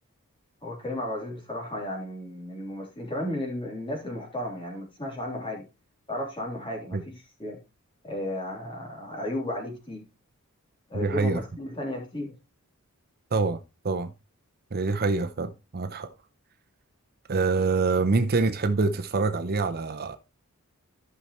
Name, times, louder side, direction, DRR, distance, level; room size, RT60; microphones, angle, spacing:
voice 1, 0.6-5.6 6.1-7.6 8.0-10.0 10.9-12.3, left 1 dB, 25° left, 3.3 m, -34 dB
voice 2, 10.9-11.4 13.3-13.6 13.8-14.1 14.7-16.1 17.3-20.2, right 3 dB, 45° right, 0.7 m, -25 dB
14.0 x 5.8 x 3.0 m
head